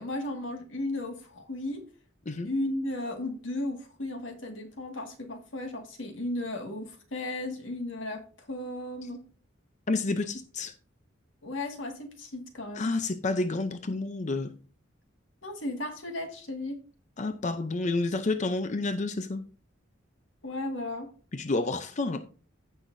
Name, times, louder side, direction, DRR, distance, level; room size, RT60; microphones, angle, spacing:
voice 1, 0.0-1.9 2.4-9.2 11.4-12.9 15.4-16.8 20.4-21.1, left 1 dB, 85° left, 1.9 m, -35 dB
voice 2, 9.9-10.7 12.7-14.5 17.2-19.4 21.3-22.2, left 3 dB, 40° left, 0.6 m, -29 dB
15.5 x 5.9 x 2.6 m
head